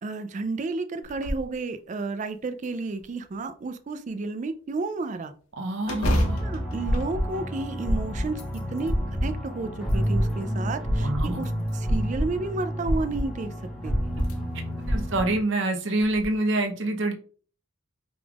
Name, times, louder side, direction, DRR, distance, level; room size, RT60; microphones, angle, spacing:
voice 1, 0.0-5.3 5.9-9.0 9.2-13.5 13.8-14.1, right 3 dB, 35° right, 10 dB, 0.3 m, -32 dB
sound 1, 1.0-1.5 2.0-2.1 2.6-3.4 5.8-7.8 8.2-9.0 9.6-10.5 11.4-12.0 13.5-13.6 14.1-14.4 14.8-14.9 16.0-16.2, equal, 90° left, 0.9 m, -31 dB
voice 2, 5.6-6.5 11.0-11.5 14.9-17.1, right 2 dB, 55° right, 4 dB, 0.7 m, -26 dB
hejdå - Depressive Guitar, 6.1-15.4, equal, ahead, 1.0 m, -28 dB
5.1 x 3.4 x 2.4 m, 0.42 s
head